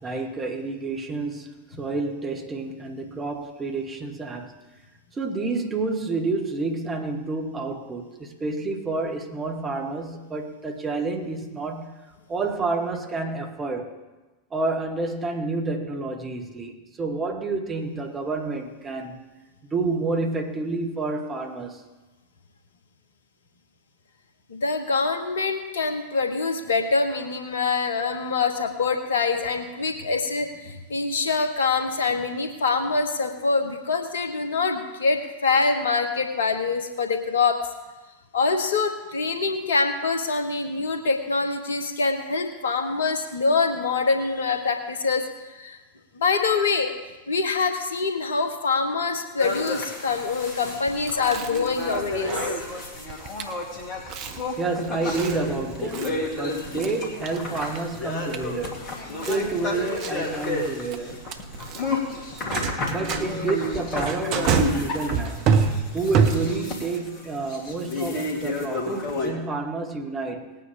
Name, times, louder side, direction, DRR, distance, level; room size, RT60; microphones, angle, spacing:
voice 1, 0.0-4.6 5.1-11.9 12.3-13.9 14.5-19.2 19.7-21.8 54.6-58.9 59.2-61.3 62.9-65.6 65.9-70.6, right 3 dB, 20° right, 1.8 m, -29 dB
voice 2, 24.5-37.6 38.3-45.8 46.1-46.9 47.3-52.3, left 4 dB, 65° left, 1.4 m, -25 dB
sound 1, 49.4-69.3, left 2 dB, 35° left, 2.7 m, -31 dB
Chewing mastication, 50.9-66.8, right 6 dB, 40° right, 1.1 m, -29 dB
19.5 x 9.2 x 3.8 m
figure-of-eight pair, 90°, 0 cm